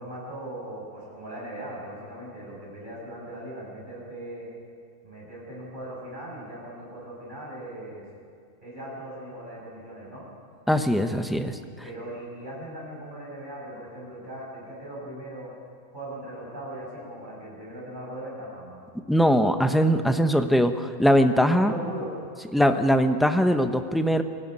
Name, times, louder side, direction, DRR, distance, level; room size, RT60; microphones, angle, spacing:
voice 1, 0.0-4.5 5.0-8.1 8.6-10.3 11.8-15.5 15.9-18.8 21.5-22.1, right 1 dB, 35° right, -5 dB, 7.2 m, -39 dB
voice 2, 10.7-11.6 19.1-21.7 22.5-24.2, equal, ahead, 7 dB, 0.7 m, -21 dB
23.5 x 13.5 x 9.9 m, 2.3 s
omnidirectional pair, 1.5 m